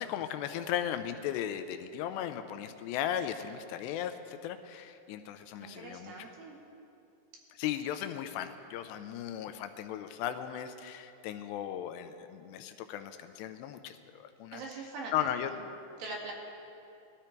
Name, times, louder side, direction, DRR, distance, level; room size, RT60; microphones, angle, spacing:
voice 1, 0.0-6.3 7.5-14.6 15.1-15.5, left 10 dB, 85° left, 9 dB, 2.7 m, -36 dB
voice 2, 5.6-6.6 14.5-15.1 15.4-15.6 16.0-16.3, right 3 dB, 65° right, -1 dB, 3.1 m, -42 dB
19.0 x 13.0 x 4.5 m, 2.6 s
omnidirectional pair, 5.0 m